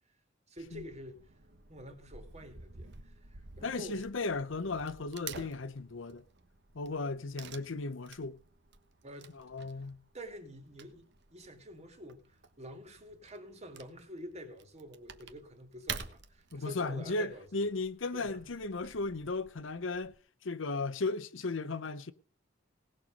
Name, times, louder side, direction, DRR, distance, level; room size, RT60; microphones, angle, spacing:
voice 1, 0.5-1.3 1.7-4.1 9.0-9.3 9.7-9.9 10.1-17.6 18.1-18.4, equal, 35° right, 2.5 m, -48 dB
Wood / Tearing, 0.6-20.2, right 6 dB, 60° right, 1.3 m, -50 dB
voice 2, 3.6-6.2 6.7-8.4 9.3-10.0 16.5-20.1 20.4-22.1, left 3 dB, 70° left, 0.8 m, -36 dB
18.5 x 6.9 x 5.3 m
head